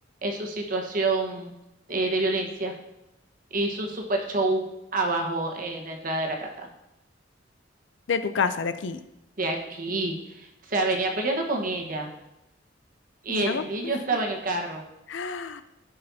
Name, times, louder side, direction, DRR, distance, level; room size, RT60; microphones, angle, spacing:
voice 1, 0.2-1.5 1.9-2.7 3.5-4.6 4.9-6.7 9.4-12.1 13.2-14.8, right 2 dB, 50° right, 2 dB, 1.3 m, -27 dB
voice 2, 8.1-9.0 13.3-13.9 15.1-15.6, left 5 dB, 80° left, 11 dB, 0.5 m, -28 dB
14.5 x 5.4 x 2.8 m, 0.90 s
head